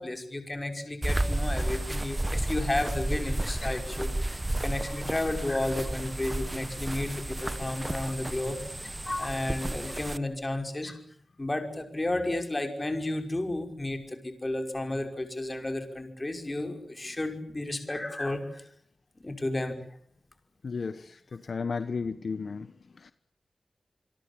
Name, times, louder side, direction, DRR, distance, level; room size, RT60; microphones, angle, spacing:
voice 1, 0.0-8.6 9.1-11.0 11.4-18.6 19.2-19.8, left 2 dB, 25° left, 5.6 m, -32 dB
sound 1, 1.0-10.2, right 1 dB, 20° right, 1.0 m, -32 dB
voice 2, 20.6-23.1, left 5 dB, 65° left, 1.1 m, -34 dB
27.0 x 23.5 x 8.7 m
wide cardioid pair, 100°, 0 cm